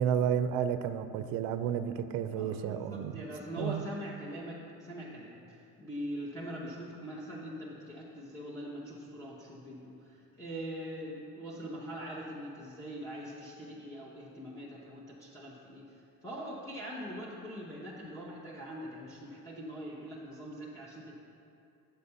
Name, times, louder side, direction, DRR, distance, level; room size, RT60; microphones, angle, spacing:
voice 1, 0.0-3.2 3.6-3.9, right 8 dB, 65° right, 11 dB, 0.5 m, -31 dB
voice 2, 2.3-15.8 16.2-21.1, equal, 10° left, -6 dB, 0.8 m, -42 dB
7.9 x 4.1 x 6.8 m, 2.6 s
cardioid pair, 140°, 31 cm